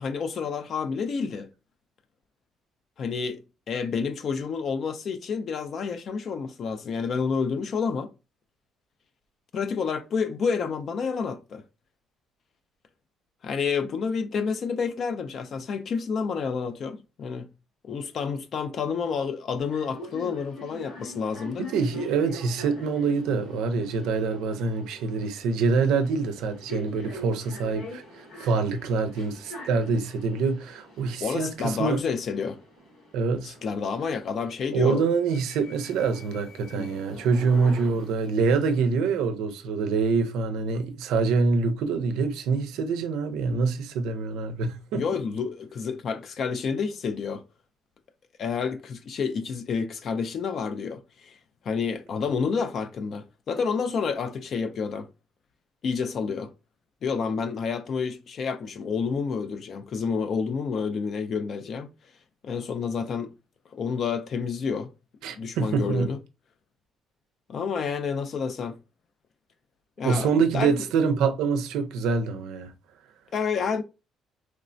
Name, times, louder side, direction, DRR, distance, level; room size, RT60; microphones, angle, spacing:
voice 1, 0.0-1.5 3.0-8.1 9.5-11.6 13.4-17.5 17.8-21.7 31.2-32.6 33.4-35.0 36.7-36.9 44.9-47.4 48.4-51.3 51.7-55.1 55.8-56.5 57.0-61.9 62.4-63.3 63.7-64.9 65.4-66.2 67.5-68.8 70.0-70.7 73.3-73.8, left 5 dB, 40° left, 0.3 m, -29 dB
sound 1, 19.6-38.8, equal, 85° left, 1.3 m, -44 dB
voice 2, 21.6-28.0 28.4-32.0 33.1-33.6 34.7-45.0 65.2-66.1 70.0-72.7, right 4 dB, 80° right, 0.5 m, -25 dB
3.1 x 2.1 x 2.5 m
cardioid pair, 175°, 0 cm